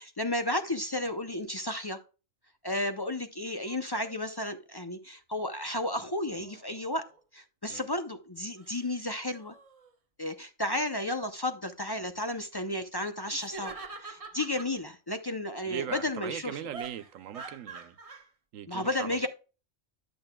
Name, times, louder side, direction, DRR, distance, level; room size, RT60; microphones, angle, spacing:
voice 1, 0.0-2.0 2.6-7.0 7.3-9.5 10.2-13.7 14.0-16.6 18.7-19.3, left 1 dB, 35° left, 0.4 m, -33 dB
sound 1, 3.5-4.2 5.5-7.2 8.6-9.0 9.3-9.9 13.3-14.7 16.7-18.3, right 4 dB, 30° right, 0.9 m, -46 dB
voice 2, 15.7-18.0 18.5-19.3, right 10 dB, 90° right, 1.1 m, -39 dB
10.5 x 6.9 x 2.2 m
omnidirectional pair, 1.3 m